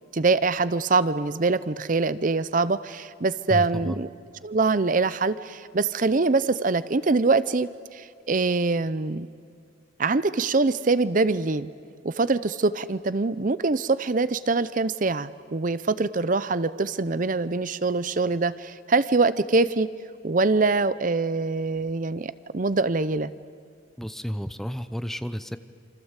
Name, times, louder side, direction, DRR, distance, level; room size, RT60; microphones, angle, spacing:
voice 1, 0.1-4.1 4.4-9.3 10.0-11.7 12.0-19.9 20.2-23.3, right 3 dB, 45° right, 15 dB, 0.6 m, -24 dB
voice 2, 3.5-4.0 24.0-25.6, equal, ahead, 11 dB, 0.7 m, -31 dB
28.0 x 25.5 x 8.2 m, 2.2 s
head